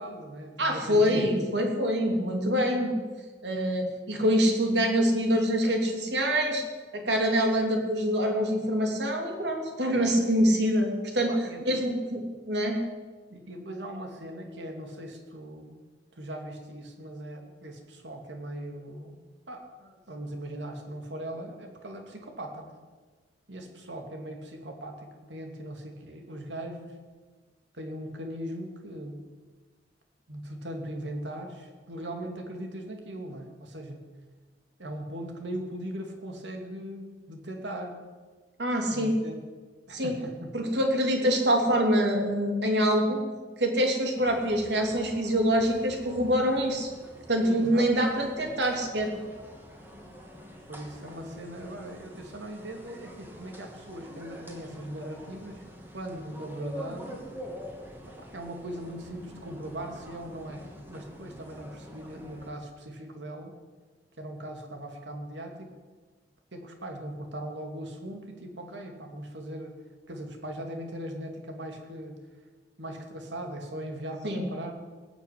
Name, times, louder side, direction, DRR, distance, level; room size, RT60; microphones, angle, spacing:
voice 1, 0.0-1.3 11.3-11.6 13.3-15.8 16.1-19.2 19.5-22.7 23.5-27.0 27.7-29.2 30.3-34.0 34.8-38.0 38.9-39.4 39.9-40.5 47.4-47.9 50.7-55.6 55.9-57.3 58.2-63.5 64.2-65.7 66.5-69.8 70.1-72.2 72.8-74.7, right 1 dB, 90° right, 3 dB, 2.6 m, -39 dB
voice 2, 0.6-2.9 3.4-6.6 6.9-11.3 11.6-12.8 38.6-39.2 39.9-40.1 40.5-43.2 43.6-46.9 47.3-49.1 74.2-74.5, equal, 70° right, 2 dB, 3.1 m, -25 dB
sound 1, 44.2-62.5, equal, 10° right, 2.4 m, -46 dB
19.0 x 7.0 x 9.5 m, 1.4 s
head